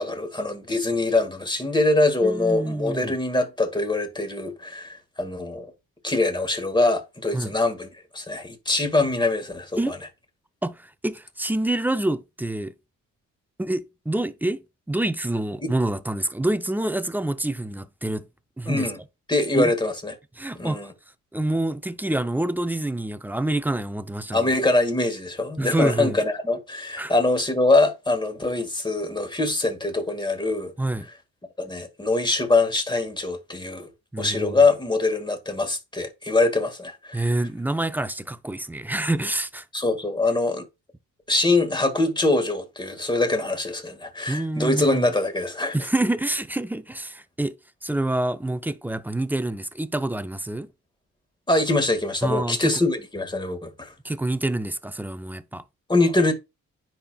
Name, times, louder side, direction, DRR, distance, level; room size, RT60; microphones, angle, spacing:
voice 1, 0.0-5.7 6.0-10.0 15.6-15.7 18.7-19.0 19.3-20.1 20.5-20.9 24.3-30.7 31.6-33.9 34.2-37.3 39.7-40.6 41.3-45.8 51.5-53.9 55.9-56.3, left 2 dB, 15° left, 1.8 m, -23 dB
voice 2, 2.2-3.2 7.3-7.5 9.8-9.9 10.6-12.7 13.6-14.6 14.9-18.3 18.6-18.9 19.5-19.7 20.4-20.9 21.3-24.5 25.6-26.2 27.0-27.1 30.8-31.1 34.1-34.6 37.1-39.6 44.3-45.1 45.7-47.5 47.8-50.7 52.2-52.6 54.0-55.6, right 1 dB, 5° right, 0.5 m, -27 dB
9.8 x 4.4 x 2.4 m
cardioid pair, 80°, 33 cm